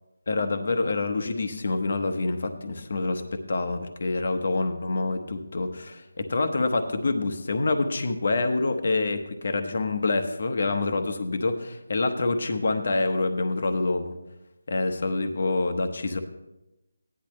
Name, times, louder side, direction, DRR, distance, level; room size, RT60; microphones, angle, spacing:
voice 1, 0.3-14.2 14.7-16.2, left 3 dB, 45° left, 7 dB, 1.0 m, -26 dB
15.5 x 10.5 x 3.2 m, 0.95 s
figure-of-eight pair, 175°, 0 cm